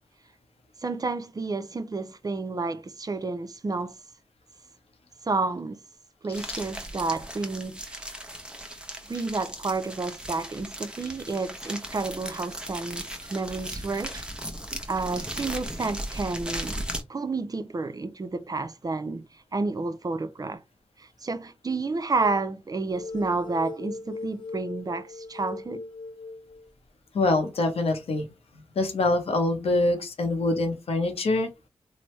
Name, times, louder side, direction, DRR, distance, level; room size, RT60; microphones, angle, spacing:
voice 1, 0.8-4.0 5.2-5.8 6.2-8.1 9.1-14.3 14.9-20.6 21.0-25.8, right 3 dB, 40° right, 0.4 m, -30 dB
sound 1, 6.3-17.0, right 1 dB, 10° right, 0.8 m, -37 dB
Laargo crecendo, 22.2-22.5 22.9-26.7, left 3 dB, 50° left, 0.4 m, -39 dB
voice 2, 27.1-28.3 28.8-31.5, left 2 dB, 90° left, 0.7 m, -24 dB
3.2 x 2.0 x 3.1 m
cardioid pair, 50°, 10 cm